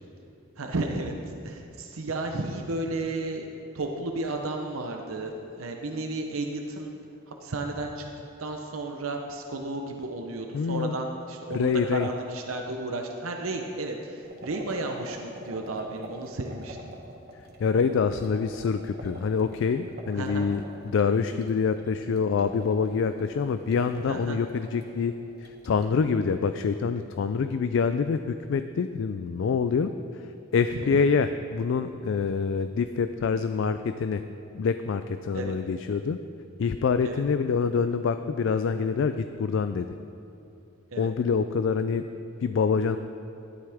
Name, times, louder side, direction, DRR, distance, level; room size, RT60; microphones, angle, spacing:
voice 1, 0.6-1.2 1.4-3.5 3.7-6.9 7.4-8.1 8.4-16.9 20.1-20.5 24.0-24.4 30.7-31.1 35.3-35.6 37.0-37.2 40.9-41.1, right 2 dB, 85° right, 3 dB, 0.8 m, -33 dB
voice 2, 10.5-10.9 11.5-12.1 17.6-25.1 25.4-30.3 30.5-34.2 34.6-36.2 36.6-39.9 41.0-42.0 42.4-43.0, left 5 dB, 65° left, 10 dB, 0.3 m, -26 dB
sound 1, 14.2-26.3, right 1 dB, 50° right, 1.3 m, -46 dB
13.0 x 11.0 x 3.5 m, 2.7 s
head